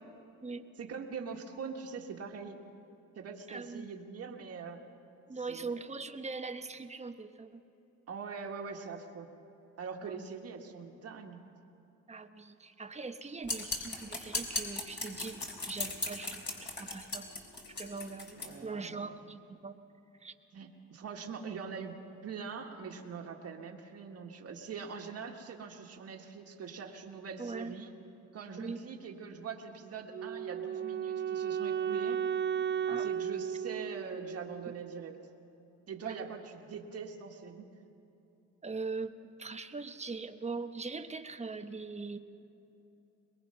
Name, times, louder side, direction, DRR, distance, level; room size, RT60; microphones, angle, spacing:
voice 1, 0.8-2.6 3.2-4.8 5.5-5.7 8.1-9.3 9.8-11.4 18.4-19.1 20.5-27.9 28.3-32.2 33.0-35.2 35.9-37.7, right 5 dB, 55° right, 1 dB, 1.8 m, -43 dB
voice 2, 3.5-3.9 5.3-7.6 10.0-10.2 12.1-17.3 17.7-19.8 20.2-20.3 27.4-27.7 28.6-28.8 32.9-33.1 36.0-36.3 38.6-42.2, right 4 dB, 20° right, 8 dB, 1.1 m, -41 dB
sound 1, 13.4-18.5, left 2 dB, 35° left, 3.9 m, -37 dB
Wind instrument woodwind instrument, 30.1-35.2, right 8 dB, 35° right, 0.4 m, -34 dB
23.0 x 21.0 x 5.6 m, 2.9 s
cardioid pair, 90°, 30 cm